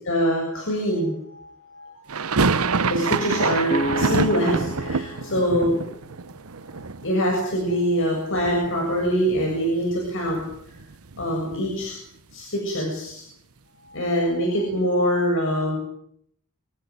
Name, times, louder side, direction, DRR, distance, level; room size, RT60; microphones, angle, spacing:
voice 1, 0.1-2.1 2.9-5.8 6.7-10.4 11.2-12.0 12.3-13.2 13.9-15.8, equal, 65° left, -1 dB, 7.4 m, -24 dB
sound 1, 2.1-8.0 8.3-9.1 9.4-9.5 9.8-11.9, right 4 dB, 85° right, 1.0 m, -27 dB
sound 2, 3.7-7.5, equal, 30° left, 2.0 m, -33 dB
27.0 x 16.0 x 9.8 m, 0.71 s
head